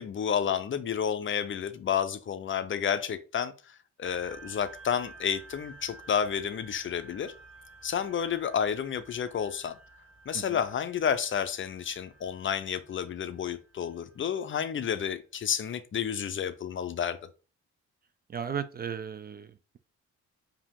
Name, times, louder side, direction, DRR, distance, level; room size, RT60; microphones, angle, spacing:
voice 1, 0.0-7.3 7.8-9.8 10.3-17.2, left 8 dB, 40° left, 0.6 m, -31 dB
sound 1, 4.0-14.9, right 2 dB, 5° right, 2.5 m, -52 dB
voice 2, 18.3-19.5, right 7 dB, 30° right, 0.4 m, -35 dB
4.9 x 2.8 x 3.6 m
cardioid pair, 90°, 30 cm